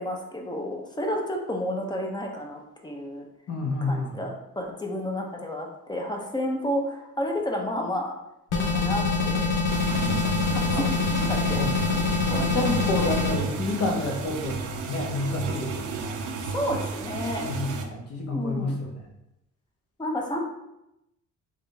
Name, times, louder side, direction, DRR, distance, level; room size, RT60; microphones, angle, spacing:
voice 1, 0.0-3.3 3.8-8.1 8.5-9.5 10.5-11.0 11.3-11.7 12.3-12.5 16.5-17.5 18.3-18.8 20.0-20.4, equal, 15° left, 0 dB, 0.7 m, -31 dB
voice 2, 3.5-4.2 10.7-10.8 11.5-11.8 12.2-16.1 17.4-19.0, left 2 dB, 55° left, 1 dB, 0.9 m, -29 dB
sound 1, 8.5-13.4, left 4 dB, 85° left, 0.8 m, -25 dB
sound 2, 9.7-17.8, right 4 dB, 75° right, 0.6 m, -33 dB
3.6 x 2.6 x 3.4 m, 0.87 s
cardioid pair, 90°, 30 cm